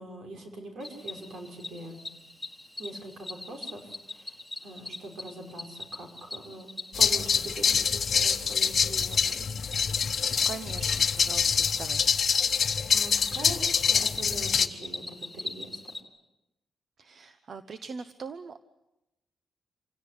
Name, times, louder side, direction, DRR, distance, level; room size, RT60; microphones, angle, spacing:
voice 1, 0.0-2.0 2.8-6.7 7.0-9.5 12.9-15.8, right 1 dB, 65° right, 3 dB, 6.3 m, -43 dB
Cricket, 0.8-16.0, left 2 dB, 10° left, 1.7 m, -41 dB
sound 1, 6.9-14.7, left 6 dB, 45° left, 1.1 m, -25 dB
voice 2, 10.4-12.0 17.0-18.6, right 5 dB, 45° right, 11 dB, 0.9 m, -41 dB
27.0 x 17.5 x 9.9 m, 0.94 s
wide cardioid pair, 170°, 0 cm